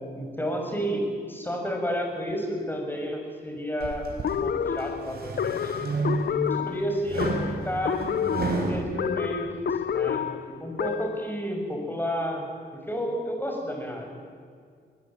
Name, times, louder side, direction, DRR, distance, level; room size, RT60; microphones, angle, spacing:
voice 1, 0.1-5.7 6.3-8.0 8.7-12.5 12.7-14.1, equal, 10° left, 2 dB, 6.5 m, -31 dB
sound 1, 3.8-4.4 4.9-6.5 7.1-8.8, right 3 dB, 65° right, 4.5 m, -30 dB
sound 2, 4.2-11.3, left 8 dB, 70° left, 0.8 m, -29 dB
23.0 x 19.5 x 8.9 m, 2.1 s
cardioid pair, 85°, 17 cm